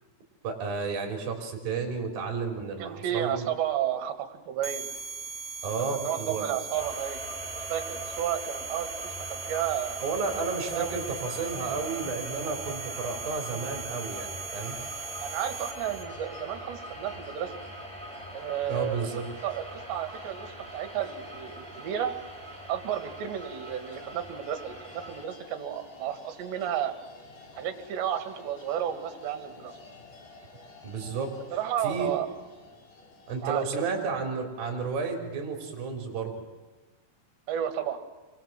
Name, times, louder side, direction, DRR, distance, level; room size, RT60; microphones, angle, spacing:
voice 1, 0.4-3.4 5.6-6.5 10.0-14.8 18.7-19.3 30.8-31.4 31.8-32.1 33.3-36.5, right 5 dB, 55° right, 3 dB, 5.5 m, -32 dB
voice 2, 2.8-4.9 5.8-7.3 7.7-10.0 10.7-10.9 15.2-17.5 18.3-19.0 19.4-22.1 22.7-26.9 27.5-29.7 31.5-32.3 33.4-33.9 37.5-38.0, right 10 dB, 75° right, 8 dB, 3.9 m, -32 dB
sound 1, 4.6-16.0, right 5 dB, 25° left, 1.4 m, -39 dB
sound 2, 6.7-25.2, right 1 dB, ahead, 3.5 m, -42 dB
sound 3, 14.6-34.1, left 3 dB, 65° left, 5.9 m, -51 dB
28.5 x 23.5 x 7.5 m, 1.2 s
omnidirectional pair, 5.2 m